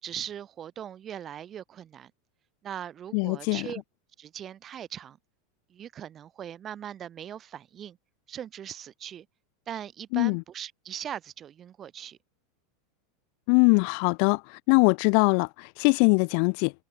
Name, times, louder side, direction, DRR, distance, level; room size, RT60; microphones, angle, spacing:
voice 1, 0.0-2.1 2.6-3.8 4.2-5.2 5.7-8.0 8.3-9.3 9.7-12.2, right 9 dB, 30° right, 2.3 m, -40 dB
voice 2, 3.1-3.7 10.1-10.4 13.5-16.7, left 40 dB or more, 60° left, 0.6 m, -22 dB
supercardioid pair, 125°, 0 cm